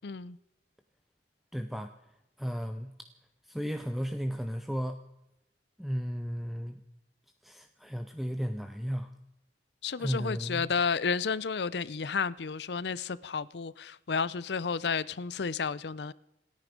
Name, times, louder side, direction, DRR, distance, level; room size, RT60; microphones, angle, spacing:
voice 1, 0.0-0.4 9.8-16.1, left 5 dB, 70° left, 20 dB, 0.6 m, -32 dB
voice 2, 1.5-1.9 2.4-2.9 3.4-5.0 5.8-6.8 7.4-9.1 10.0-10.7, equal, ahead, 7 dB, 0.7 m, -34 dB
27.5 x 9.6 x 5.2 m, 0.88 s
head